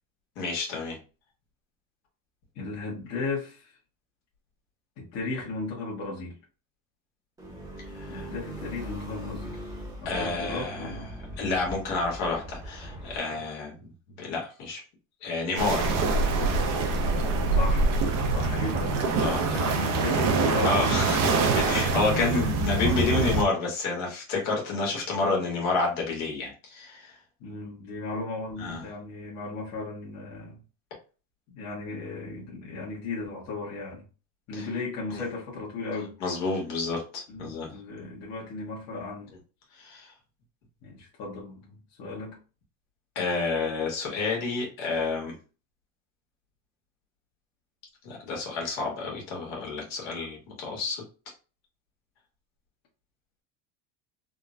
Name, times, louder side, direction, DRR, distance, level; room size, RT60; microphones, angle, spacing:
voice 1, 0.4-1.0 7.9-8.3 10.0-11.0 11.4-13.7 14.2-14.8 15.2-16.0 18.4-18.7 19.2-19.4 20.6-27.1 28.6-28.8 34.6-34.7 35.1-35.2 36.2-37.7 39.8-40.1 43.1-45.3 48.0-51.0, left 3 dB, 75° left, -1 dB, 1.4 m, -29 dB
voice 2, 2.5-3.7 5.0-6.3 8.1-9.6 10.1-11.1 13.3-13.4 17.6-17.9 18.3-21.0 22.0-22.5 22.8-23.3 27.4-30.6 31.5-34.0 34.5-36.2 37.3-39.3 40.8-42.4, left 3 dB, 55° left, -5 dB, 1.2 m, -35 dB
sound 1, 7.4-13.2, equal, 10° right, 0.8 m, -40 dB
sound 2, 15.6-23.4, right 3 dB, 50° right, 0.6 m, -25 dB
3.5 x 2.1 x 2.5 m, 0.34 s
cardioid pair, 155°, 32 cm